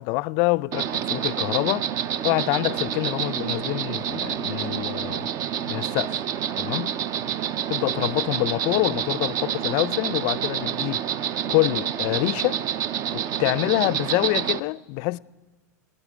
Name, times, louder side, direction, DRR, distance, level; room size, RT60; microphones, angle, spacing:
voice 1, 0.0-1.9 2.2-5.3 5.7-6.2 6.6-6.9 7.7-11.0 11.5-12.6 13.1-15.2, left 22 dB, 50° left, 0.4 m, -26 dB
Insect, 0.7-14.6, right 9 dB, 40° right, 0.5 m, -28 dB
29.0 x 10.0 x 5.0 m
hypercardioid pair, 105°, 9 cm